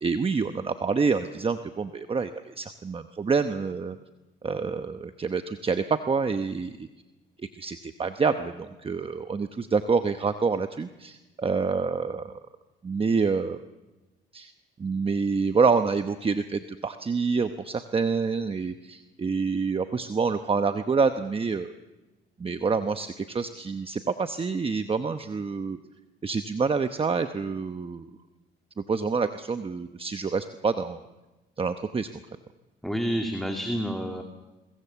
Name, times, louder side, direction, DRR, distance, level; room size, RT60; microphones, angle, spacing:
voice 1, 0.0-4.0 4.4-6.9 7.4-12.3 12.8-13.6 14.3-14.5 14.8-21.7 22.4-25.8 26.2-28.1 28.9-31.0 31.6-32.1, right 5 dB, 30° right, 8 dB, 0.9 m, -27 dB
voice 2, 32.8-34.2, equal, ahead, 3 dB, 2.3 m, -29 dB
23.0 x 20.0 x 7.0 m, 1.1 s
cardioid pair, 90°, 20 cm